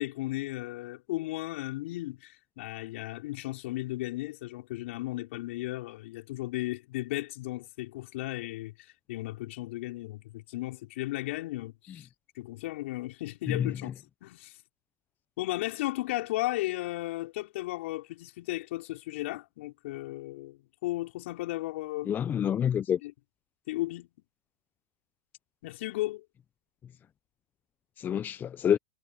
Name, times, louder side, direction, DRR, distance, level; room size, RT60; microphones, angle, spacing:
voice 1, 0.0-12.1 12.4-13.9 14.2-14.6 15.4-22.1 23.0-23.1 23.7-24.1 25.6-26.3, left 18 dB, 60° left, 5.6 m, -35 dB
voice 2, 22.1-23.0 28.0-28.8, left 9 dB, 25° left, 0.8 m, -27 dB
hypercardioid pair, 110°, 8 cm